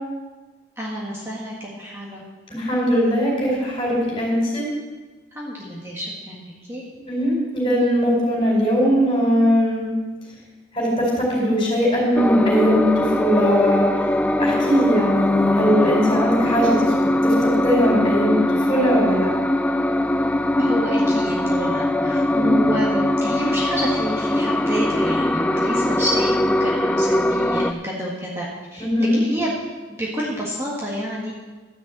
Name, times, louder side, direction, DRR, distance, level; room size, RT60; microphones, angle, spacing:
voice 1, 0.8-2.2 5.3-6.4 6.7-6.8 20.6-29.5 29.9-31.3, equal, 15° right, -5 dB, 1.6 m, -29 dB
voice 2, 2.5-4.7 7.0-9.9 10.7-14.0 14.4-16.9 17.2-19.3 22.3-22.6 28.8-29.2, equal, 30° left, -3 dB, 4.9 m, -20 dB
sound 1, 12.2-27.7, left 1 dB, 10° left, 0.3 m, -21 dB
12.5 x 6.9 x 7.9 m, 1.3 s
head